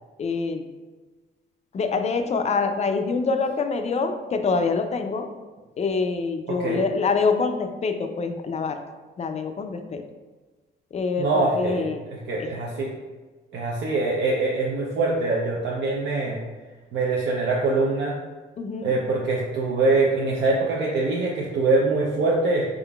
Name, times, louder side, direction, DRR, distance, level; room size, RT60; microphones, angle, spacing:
voice 1, 0.2-0.6 1.7-5.3 5.8-8.8 9.2-10.0 10.9-12.0 12.4-12.5 18.6-18.9, left 4 dB, 35° left, 7 dB, 0.4 m, -25 dB
voice 2, 6.5-6.8 11.2-12.9 13.5-16.4 16.9-18.2 18.8-22.7, right 3 dB, 65° right, -3 dB, 0.6 m, -24 dB
3.7 x 3.6 x 2.3 m, 1.3 s
cardioid pair, 90°, 20 cm